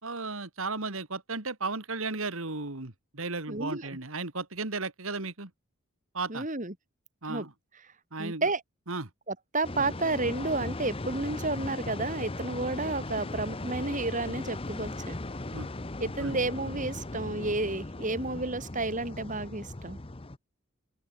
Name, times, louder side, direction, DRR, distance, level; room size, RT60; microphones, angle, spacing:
voice 1, 0.0-5.5 6.1-6.5 7.2-7.5 8.1-8.4 8.9-9.1 15.5-15.7 16.2-16.4, right 3 dB, 75° right, 2.6 m, -35 dB
voice 2, 3.5-3.9 6.3-6.7 7.3-7.5 8.2-8.6 9.3-15.1 16.0-20.0, right 2 dB, 35° right, 3.3 m, -31 dB
sound 1, 9.6-20.4, left 2 dB, 25° left, 0.9 m, -38 dB
open air
head